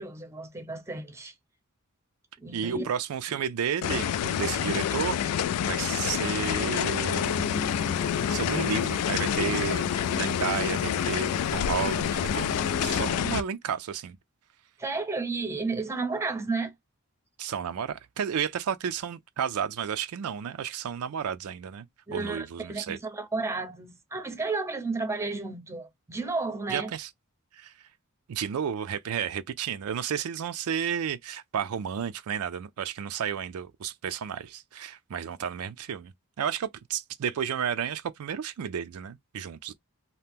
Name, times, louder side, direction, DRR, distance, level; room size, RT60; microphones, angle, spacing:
voice 1, 0.0-1.3 2.4-2.9 14.8-16.7 22.1-26.9, right 3 dB, 15° right, 0.7 m, -32 dB
voice 2, 2.5-7.9 8.3-12.6 12.8-14.2 17.4-21.9 22.1-23.0 26.7-27.1 27.5-27.7 28.3-39.7, right 7 dB, 75° right, 0.4 m, -32 dB
sound 1, 3.8-13.4, left 9 dB, 85° left, 0.3 m, -28 dB
sound 2, 7.1-13.1, left 4 dB, 50° left, 0.6 m, -36 dB
2.8 x 2.1 x 3.4 m
head